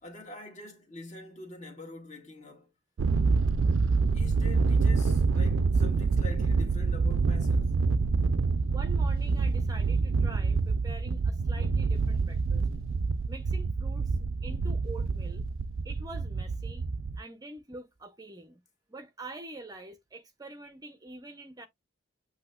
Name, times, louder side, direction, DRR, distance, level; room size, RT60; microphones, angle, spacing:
voice 1, 0.0-2.7 4.1-7.8, left 2 dB, 35° left, 1.8 m, -45 dB
Thunder, 3.0-17.2, right 4 dB, 70° right, 0.4 m, -26 dB
voice 2, 8.7-12.7 13.3-15.4 15.8-16.8 17.2-18.6 18.9-21.7, right 2 dB, 20° right, 0.6 m, -45 dB
8.2 x 2.8 x 2.3 m
head